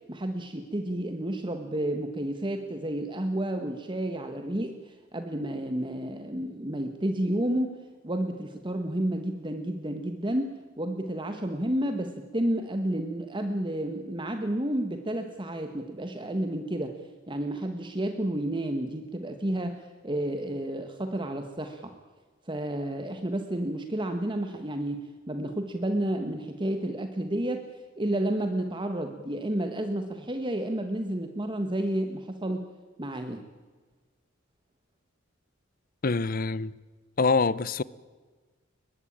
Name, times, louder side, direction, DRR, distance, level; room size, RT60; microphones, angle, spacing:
voice 1, 0.1-17.0 17.3-22.0 22.4-27.7 28.0-32.6 33.0-33.4, right 1 dB, 25° right, 1.4 m, -31 dB
voice 2, 36.0-36.7 37.2-37.8, left 4 dB, 45° left, 0.7 m, -25 dB
22.0 x 21.0 x 8.7 m
head